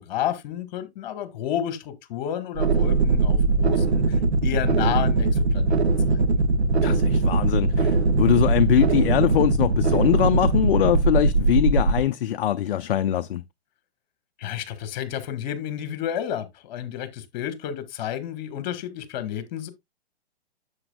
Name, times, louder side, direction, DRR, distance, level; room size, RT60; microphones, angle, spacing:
voice 1, 0.0-5.8 6.1-6.2 14.4-19.7, left 10 dB, 45° left, 1.6 m, -31 dB
sound 1, 2.5-12.0, right 3 dB, 85° right, 1.2 m, -21 dB
voice 2, 6.8-13.4, left 11 dB, 60° left, 0.6 m, -22 dB
9.8 x 7.2 x 2.3 m
hypercardioid pair, 125°, 32 cm